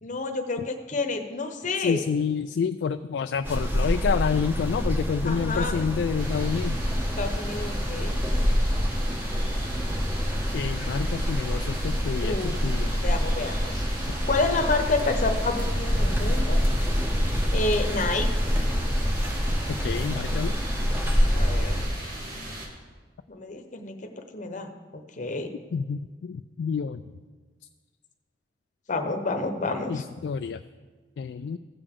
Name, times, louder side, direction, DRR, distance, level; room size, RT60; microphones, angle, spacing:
voice 1, 0.0-2.0 5.2-5.8 7.2-8.2 12.2-12.5 13.0-13.8 14.3-16.6 17.5-18.3 21.3-21.8 23.3-25.5 28.9-30.0, left 3 dB, 45° left, 5 dB, 0.9 m, -29 dB
voice 2, 1.8-6.8 10.5-12.9 19.7-20.5 25.7-27.0 29.9-30.6 31.2-31.6, left 6 dB, 75° left, 9 dB, 0.3 m, -28 dB
sound 1, 3.4-21.9, equal, 15° right, 1.1 m, -26 dB
sound 2, 6.2-22.7, right 1 dB, 55° right, 1.9 m, -38 dB
15.5 x 6.8 x 3.7 m, 1.4 s
head